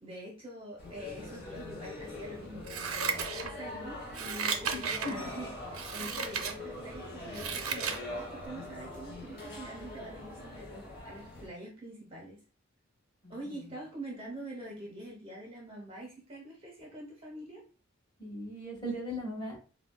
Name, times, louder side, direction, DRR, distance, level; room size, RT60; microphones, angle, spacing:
voice 1, 0.0-12.4 13.3-17.6, right 1 dB, 25° right, -2 dB, 0.7 m, -45 dB
sound 1, 0.8-11.5, left 2 dB, 45° left, 1.1 m, -43 dB
Scissors, 2.6-3.7 4.1-5.2 5.7-6.5 7.0-8.0 8.4-8.5, right 6 dB, 75° right, 0.5 m, -34 dB
voice 2, 4.7-5.4 13.2-13.7 18.2-19.6, equal, 20° left, -5 dB, 1.4 m, -39 dB
3.9 x 2.1 x 2.2 m, 0.38 s
head